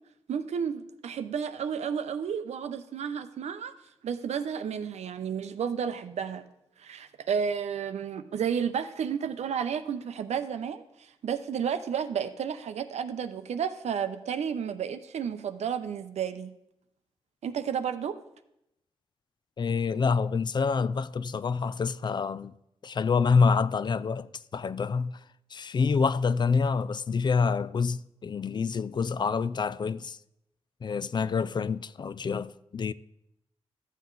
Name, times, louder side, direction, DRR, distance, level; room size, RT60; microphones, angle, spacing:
voice 1, 0.3-3.7 4.0-6.4 6.8-16.5 17.4-18.2, right 7 dB, 85° right, 0.6 m, -32 dB
voice 2, 19.6-22.6 22.8-25.2 25.5-30.2 30.8-32.9, left 5 dB, 45° left, 0.4 m, -27 dB
13.5 x 7.5 x 3.9 m
wide cardioid pair, 95°, 11 cm